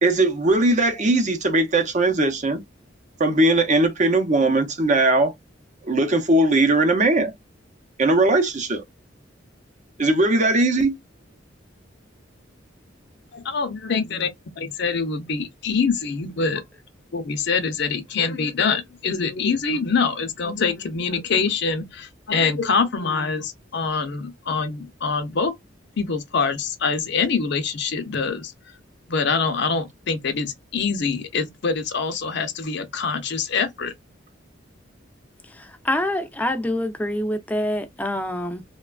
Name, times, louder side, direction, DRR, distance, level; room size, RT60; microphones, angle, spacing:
voice 1, 0.0-2.6 3.2-5.3 5.8-7.3 8.0-8.8 10.0-11.0, right 2 dB, 40° right, 0.6 m, -19 dB
voice 2, 13.3-14.3 14.6-16.6 17.1-25.5 26.0-28.5 29.1-33.9, left 5 dB, 65° left, 0.6 m, -24 dB
voice 3, 35.5-38.6, left 1 dB, 10° left, 0.5 m, -26 dB
3.0 x 2.2 x 2.2 m
head